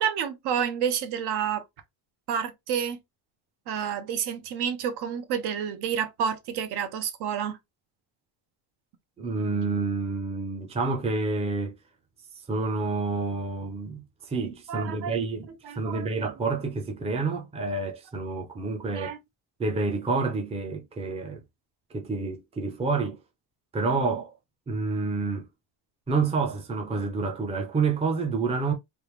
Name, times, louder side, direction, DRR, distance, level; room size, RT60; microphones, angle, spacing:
voice 1, 0.0-1.6 2.3-3.0 3.7-7.6 14.7-15.3 15.6-16.1 18.9-19.2, right 8 dB, 55° right, 0.8 m, -29 dB
voice 2, 9.2-11.7 12.5-15.5 15.8-19.1 19.6-21.4 21.9-23.2 23.7-24.3 24.7-25.5 26.1-28.7, right 4 dB, 15° right, 0.6 m, -28 dB
3.5 x 2.5 x 3.1 m
cardioid pair, 150°, 47 cm